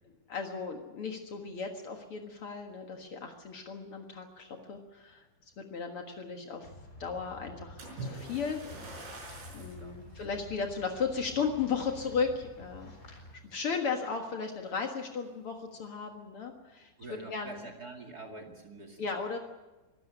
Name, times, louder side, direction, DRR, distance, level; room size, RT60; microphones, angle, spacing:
voice 1, 0.3-5.2 5.6-6.7 7.0-8.6 9.5-16.9 17.3-17.7 19.0-19.4, left 5 dB, 90° left, 3 dB, 1.2 m, -35 dB
sound 1, 6.6-13.3, left 2 dB, 20° left, 4.0 m, -50 dB
Splash splatter, 7.8-9.8 10.5-10.7 11.3-11.4, right 2 dB, 85° right, 8.4 m, -43 dB
voice 2, 9.5-10.2 17.0-19.1, right 3 dB, 35° right, 2 dB, 1.6 m, -47 dB
24.0 x 13.0 x 10.0 m, 1.1 s
omnidirectional pair, 5.2 m